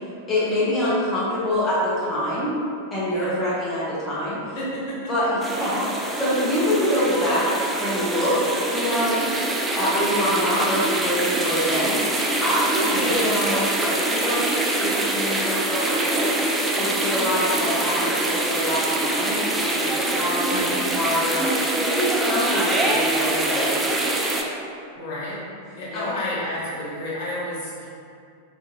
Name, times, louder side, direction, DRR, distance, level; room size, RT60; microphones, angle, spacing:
voice 1, 0.3-2.5 2.9-4.4 5.1-8.4 8.7-9.2 9.7-16.4 16.8-21.5 21.8-24.2 25.9-26.1, equal, 15° left, -10 dB, 0.8 m, -25 dB
voice 2, 3.1-3.4 4.5-5.1 12.8-13.2 20.5-20.9 24.9-25.4 25.7-27.9, left 1 dB, 50° left, -8 dB, 1.1 m, -31 dB
sound 1, 5.4-24.4, right 2 dB, 15° right, 0.4 m, -24 dB
3.8 x 2.6 x 2.6 m, 2.5 s
figure-of-eight pair, 90°, 0 cm